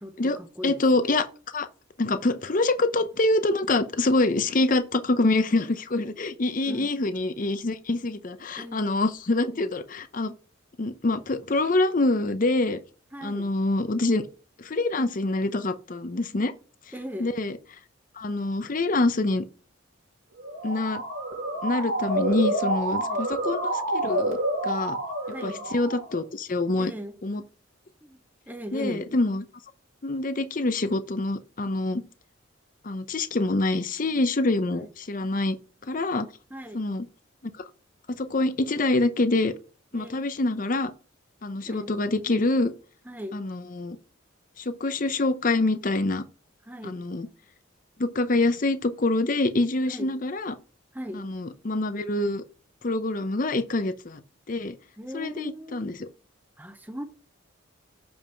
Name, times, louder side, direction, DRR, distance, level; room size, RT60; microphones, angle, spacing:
voice 1, 0.0-0.7 6.7-6.9 8.6-8.8 13.1-13.5 16.9-17.3 23.0-23.2 25.3-25.7 26.8-27.1 28.0-28.2 28.5-29.0 34.8-34.9 36.5-36.8 39.9-40.2 41.7-41.9 43.1-43.4 46.7-47.0 49.9-50.1 50.9-51.3 55.0-55.9 56.6-57.0, equal, 10° right, 0.7 m, -38 dB
voice 2, 0.6-1.3 1.5-1.7 2.0-10.3 10.8-12.8 13.2-14.3 14.6-16.5 17.2-17.6 18.2-19.4 20.6-21.0 21.6-24.4 24.6-25.0 25.3-26.9 27.2-27.4 28.7-29.5 30.0-32.0 32.8-35.6 35.9-36.3 36.7-37.1 38.1-39.5 39.9-40.9 41.4-42.7 43.3-44.0 44.6-46.2 46.8-47.3 48.0-50.6 51.1-52.4 52.8-54.2 54.5-54.8 55.1-56.1, left 2 dB, 40° left, 0.6 m, -25 dB
Motor vehicle (road) / Siren, 20.4-26.2, right 1 dB, 80° right, 2.1 m, -28 dB
7.1 x 5.2 x 3.4 m
head